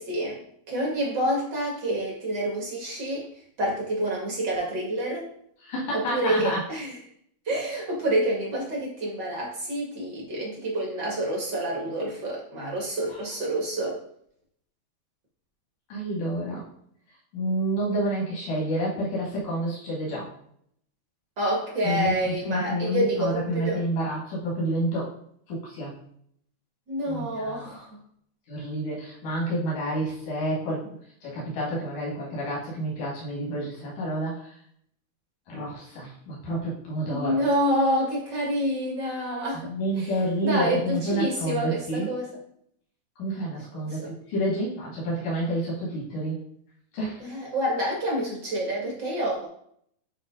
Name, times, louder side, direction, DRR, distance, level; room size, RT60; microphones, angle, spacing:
voice 1, 0.0-3.3 3.6-5.3 5.9-7.0 7.5-14.0 21.4-23.8 26.9-28.0 37.1-39.7 40.0-40.1 40.4-42.4 43.6-44.1 47.2-49.5, right 1 dB, 40° right, -3 dB, 2.0 m, -28 dB
voice 2, 5.6-6.6 15.9-16.6 17.3-20.3 21.8-25.1 25.5-26.0 27.1-27.7 28.5-30.9 31.2-34.5 35.5-37.4 39.7-42.1 43.2-46.4 46.9-47.2, right 1 dB, 85° left, -5 dB, 3.6 m, -29 dB
9.3 x 3.2 x 3.8 m, 0.66 s
omnidirectional pair, 3.6 m